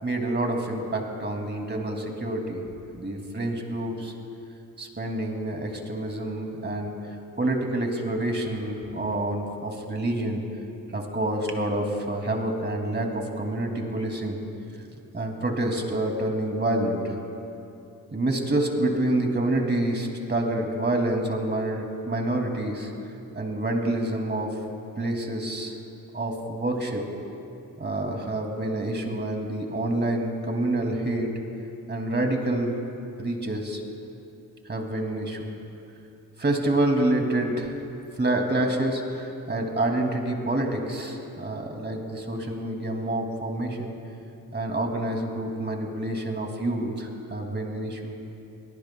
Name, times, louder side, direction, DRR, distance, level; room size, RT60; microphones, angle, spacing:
voice 1, 0.0-2.6 2.9-4.1 4.8-10.4 10.9-14.4 15.1-17.1 18.1-22.9 23.3-24.6 25.0-25.8 26.1-27.0 27.8-31.3 31.9-32.7 33.2-33.8 34.7-35.5 36.4-37.7 38.1-43.9 44.5-48.1, right 1 dB, 25° right, 2 dB, 2.5 m, -27 dB
24.5 x 18.0 x 2.3 m, 2.7 s
cardioid pair, 70°, 39 cm